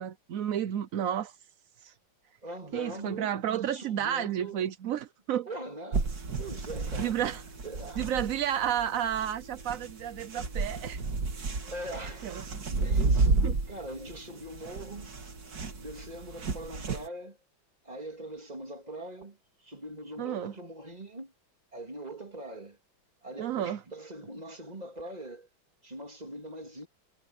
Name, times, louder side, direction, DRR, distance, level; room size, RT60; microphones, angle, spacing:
voice 1, 0.0-1.4 1.8-1.9 2.7-5.5 7.0-7.4 8.0-11.0 12.2-12.6 13.4-13.5 20.2-20.5 23.4-23.8, right 10 dB, 70° right, 0.8 m, -31 dB
voice 2, 2.4-3.4 3.7-4.7 5.5-7.2 7.6-8.0 11.6-13.4 13.7-15.2 15.8-17.4 17.8-21.3 21.7-22.8 23.2-25.5 25.8-26.9, right 1 dB, 20° right, 3.1 m, -42 dB
sound 1, 5.9-17.1, right 3 dB, 50° right, 2.4 m, -32 dB
omnidirectional pair, 2.2 m